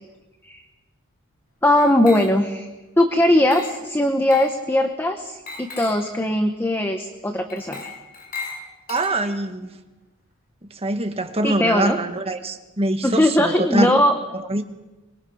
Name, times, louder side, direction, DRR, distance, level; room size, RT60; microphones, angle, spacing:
voice 1, 1.6-2.7 3.0-7.9 11.4-12.0 13.0-14.1, left 1 dB, 10° left, 5 dB, 1.1 m, -19 dB
Glass, 1.8-2.6 3.5-3.9 4.3-4.6 5.5-6.1 7.5-9.5, left 4 dB, 45° left, 5.1 m, -37 dB
voice 2, 8.9-9.7 10.7-13.9 14.3-14.6, right 2 dB, 30° right, 5 dB, 1.6 m, -24 dB
25.0 x 21.5 x 5.7 m, 1.1 s
head